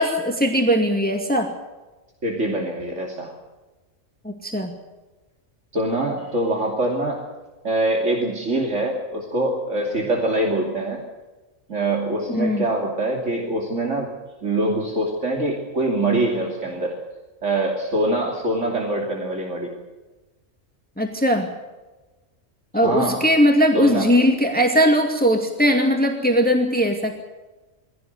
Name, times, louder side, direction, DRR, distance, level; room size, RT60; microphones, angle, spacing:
voice 1, 0.0-1.5 4.2-4.7 12.4-12.6 21.0-21.5 22.7-27.1, equal, 5° left, 2 dB, 2.2 m, -19 dB
voice 2, 2.2-3.3 5.7-7.2 7.6-11.0 11.7-14.1 14.4-17.0 17.4-19.7 22.8-23.2 23.7-24.1, right 1 dB, 65° right, 0 dB, 3.2 m, -24 dB
22.5 x 17.0 x 7.9 m, 1.2 s
omnidirectional pair, 1.3 m